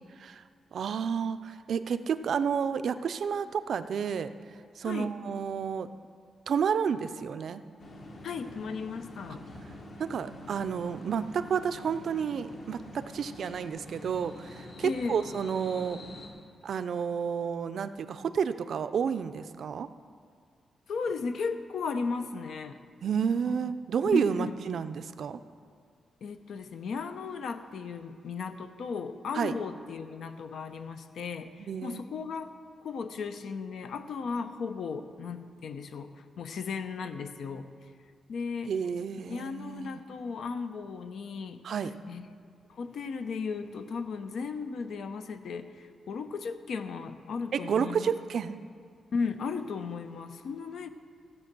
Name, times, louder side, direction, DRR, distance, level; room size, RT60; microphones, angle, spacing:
voice 1, 0.7-4.3 4.8-5.9 6.5-7.6 10.0-16.0 16.6-19.9 23.0-25.4 29.3-29.5 31.7-32.0 38.7-40.0 41.6-41.9 47.5-48.6, right 7 dB, 65° right, 12 dB, 0.5 m, -30 dB
sound 1, 7.8-16.3, left 1 dB, 50° left, 1.7 m, -46 dB
voice 2, 8.2-9.4 14.8-15.2 20.9-22.8 23.5-23.6 24.1-24.6 26.2-37.7 38.3-38.8 39.3-41.6 42.1-42.3 42.7-48.1 49.1-50.9, left 5 dB, 70° left, 9 dB, 0.7 m, -36 dB
15.0 x 7.6 x 6.0 m, 2.1 s
cardioid pair, 125°, 0 cm